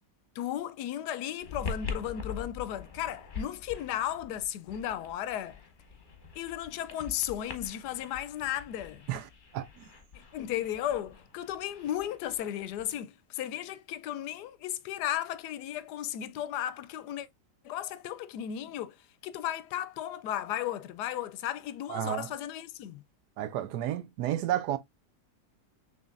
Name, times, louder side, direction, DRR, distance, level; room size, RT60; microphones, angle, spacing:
voice 1, 0.4-5.6 6.4-9.1 10.1-17.3 17.6-19.0 19.2-23.0, left 11 dB, 75° left, 1.1 m, -35 dB
sound 1, 1.4-13.0, left 5 dB, 35° left, 1.0 m, -44 dB
voice 2, 9.1-9.9 21.9-22.3 23.4-24.8, right 12 dB, 75° right, 1.1 m, -32 dB
6.3 x 3.3 x 2.4 m
omnidirectional pair, 1.9 m